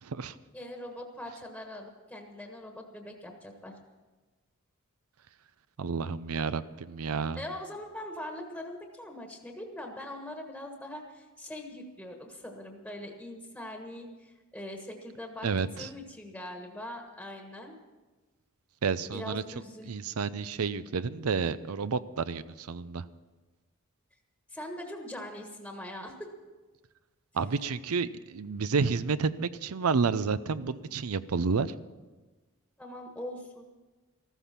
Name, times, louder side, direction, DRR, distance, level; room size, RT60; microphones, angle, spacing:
voice 1, 0.0-0.4 5.8-7.4 15.4-15.9 18.8-19.4 19.8-23.1 27.3-31.7, right 5 dB, 80° right, 15 dB, 0.6 m, -30 dB
voice 2, 0.5-3.8 7.3-15.5 15.8-17.7 19.1-19.9 24.5-26.2 30.5-30.7 32.8-33.7, left 1 dB, 5° left, 2 dB, 1.4 m, -42 dB
14.0 x 13.5 x 5.9 m, 1.2 s
head